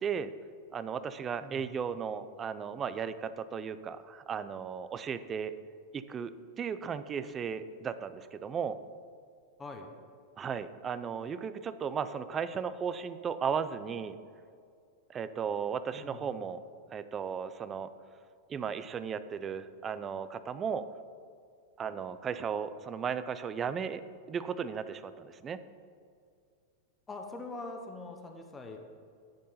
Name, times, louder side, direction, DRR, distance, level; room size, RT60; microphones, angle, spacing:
voice 1, 0.0-0.3 0.7-5.5 5.9-8.8 10.4-14.1 15.1-16.6 16.9-17.9 18.5-20.9 21.8-24.0 24.3-25.6, right 7 dB, 20° right, 13 dB, 0.4 m, -35 dB
voice 2, 9.6-9.9 15.9-16.4 27.1-28.8, left 3 dB, 15° left, 3 dB, 0.7 m, -43 dB
10.5 x 4.5 x 5.5 m, 2.3 s
supercardioid pair, 150°, 0 cm